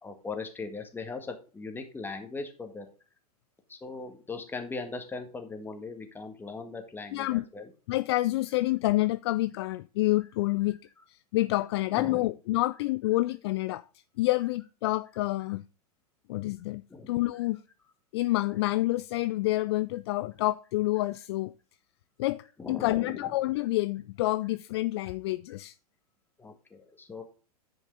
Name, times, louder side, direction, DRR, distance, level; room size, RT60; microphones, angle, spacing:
voice 1, 0.0-2.9 3.7-7.7 11.9-12.3 16.9-17.4 22.6-23.3 23.6-23.7 26.4-27.2, left 4 dB, 10° left, 1.7 m, -39 dB
voice 2, 7.1-7.4 7.9-10.8 11.1-13.8 14.2-15.6 16.3-17.6 18.1-21.5 22.2-25.7, left 18 dB, 45° left, 0.4 m, -28 dB
10.0 x 5.3 x 3.8 m
figure-of-eight pair, 100°, 20 cm